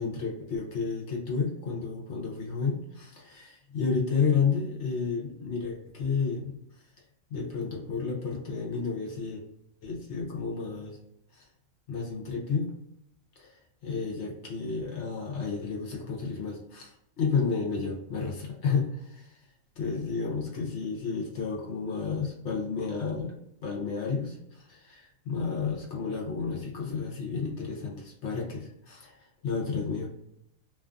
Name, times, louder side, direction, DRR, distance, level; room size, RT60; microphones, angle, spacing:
voice 1, 0.0-6.6 7.3-9.4 9.8-11.0 11.3-11.5 11.9-12.7 13.4-19.4 19.8-23.3 23.6-30.1, left 5 dB, 60° left, -2 dB, 0.9 m, -31 dB
2.5 x 2.4 x 2.3 m, 0.76 s
omnidirectional pair, 1.4 m